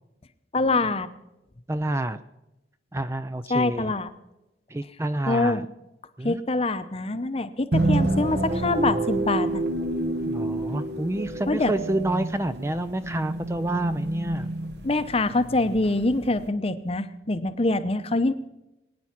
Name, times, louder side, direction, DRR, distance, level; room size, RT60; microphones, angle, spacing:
voice 1, 0.5-1.1 3.5-4.1 5.3-5.6 6.2-9.6 11.5-11.7 14.8-18.3, left 2 dB, 30° left, 12 dB, 0.7 m, -24 dB
voice 2, 1.7-2.2 2.9-3.9 4.7-5.7 6.2-6.4 10.3-14.5, right 1 dB, 15° right, 11 dB, 0.4 m, -28 dB
sound 1, 7.7-16.5, right 2 dB, 60° right, 1.2 m, -28 dB
21.5 x 9.6 x 5.9 m, 0.94 s
head